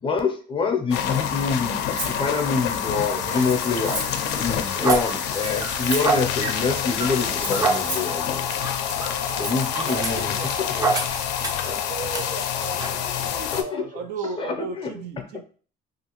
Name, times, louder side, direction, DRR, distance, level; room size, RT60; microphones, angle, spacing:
voice 1, 0.0-4.1 4.4-8.5 9.4-10.3 11.6-11.7 13.5-13.8 14.4-14.9, left 5 dB, 30° left, 4 dB, 0.5 m, -26 dB
sound 1, 0.9-13.6, left 9 dB, 85° left, 0.4 m, -27 dB
Rattle (instrument), 2.0-2.2 3.3-4.2 5.3-6.2 7.3-8.1 9.3-10.0, right 2 dB, 65° right, 1.5 m, -34 dB
sound 2, 3.0-11.7 12.1-12.3 12.8-13.0, right 4 dB, 20° right, 0.4 m, -29 dB
voice 2, 9.2-9.5 9.9-10.3 13.9-15.4, right 4 dB, 80° right, 6 dB, 0.4 m, -34 dB
voice 3, 9.8-10.5 10.8-11.0 11.6-14.3, right 4 dB, 50° right, 4 dB, 0.7 m, -39 dB
2.7 x 2.5 x 2.9 m, 0.41 s
cardioid pair, 110°, 17 cm